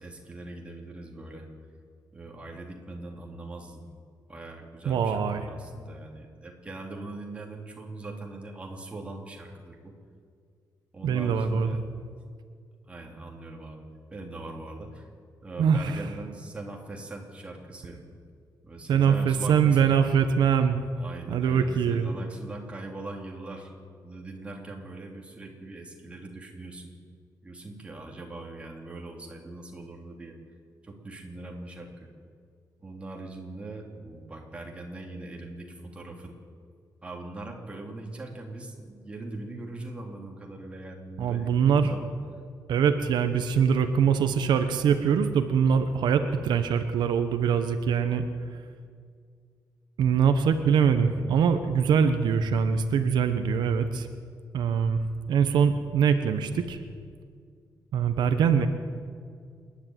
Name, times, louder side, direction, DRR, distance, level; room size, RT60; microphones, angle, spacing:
voice 1, 0.0-1.5 2.1-3.8 4.3-9.9 10.9-11.8 12.9-13.9 14.1-15.1 15.4-18.0 18.6-20.1 21.0-23.7 24.0-26.9 27.4-30.6 30.8-32.1 32.8-36.3 37.0-42.1, right 2 dB, 15° right, 0 dB, 3.0 m, -41 dB
voice 2, 4.9-5.5 11.0-11.7 15.6-16.0 18.9-20.8 21.3-22.1 41.2-41.9 42.7-48.2 50.0-54.1 54.5-56.8 57.9-58.7, right 7 dB, 85° right, 8 dB, 1.2 m, -23 dB
28.0 x 11.0 x 9.3 m, 2.1 s
wide cardioid pair, 170°, 7 cm